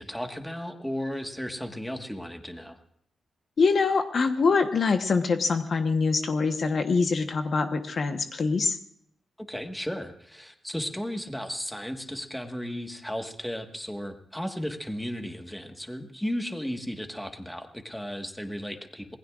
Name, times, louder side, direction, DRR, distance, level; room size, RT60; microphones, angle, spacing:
voice 1, 0.0-2.8 9.5-19.2, equal, 5° left, 4 dB, 1.5 m, -35 dB
voice 2, 3.6-8.8, left 4 dB, 45° left, 6 dB, 1.1 m, -24 dB
26.0 x 20.0 x 2.5 m, 0.69 s
wide cardioid pair, 145°, 0 cm